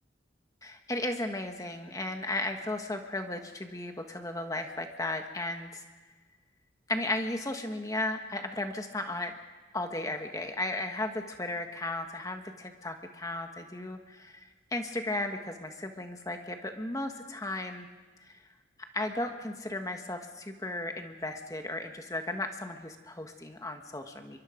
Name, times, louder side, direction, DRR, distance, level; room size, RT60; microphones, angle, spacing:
voice 1, 0.6-5.8 6.9-9.3 9.7-17.9 18.2-18.3 18.9-24.4, left 2 dB, 20° left, 5 dB, 1.5 m, -35 dB
24.0 x 23.0 x 5.2 m, 1.3 s
head